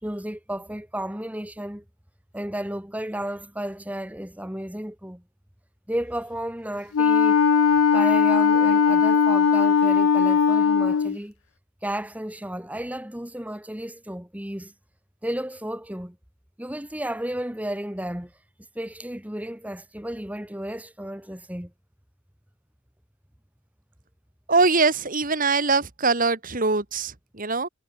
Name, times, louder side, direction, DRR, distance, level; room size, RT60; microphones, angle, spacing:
voice 1, 0.0-1.8 2.3-5.2 5.9-7.4 7.9-11.3 11.8-14.7 15.2-16.2 16.6-18.3 18.7-21.7, right 1 dB, 5° right, 1.7 m, -33 dB
Wind instrument woodwind instrument, 6.9-11.2, left 6 dB, 85° left, 0.5 m, -19 dB
voice 2, 24.5-27.7, right 4 dB, 40° right, 2.4 m, -22 dB
head